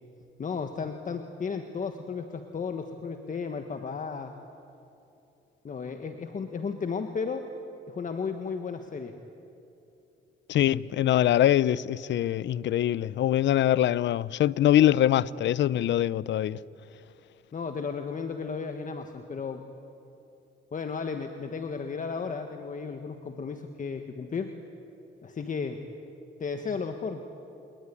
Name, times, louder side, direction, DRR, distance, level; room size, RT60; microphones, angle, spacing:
voice 1, 0.4-4.3 5.6-7.4 7.9-9.2 17.5-19.6 20.7-24.5 25.2-25.8 26.4-27.2, left 5 dB, 40° left, 1.5 m, -34 dB
voice 2, 10.5-16.6, left 12 dB, 65° left, 0.6 m, -23 dB
29.0 x 20.0 x 9.9 m
cardioid pair, 90°, 20 cm